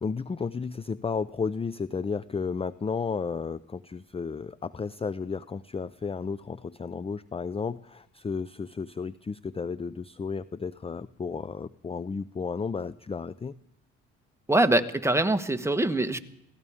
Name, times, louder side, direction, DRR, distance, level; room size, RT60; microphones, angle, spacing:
voice 1, 0.0-13.6, left 5 dB, 20° left, 16 dB, 0.5 m, -33 dB
voice 2, 14.5-16.2, right 2 dB, 10° right, 8 dB, 1.3 m, -23 dB
23.0 x 16.5 x 3.6 m, 0.84 s
supercardioid pair, 60°, 32 cm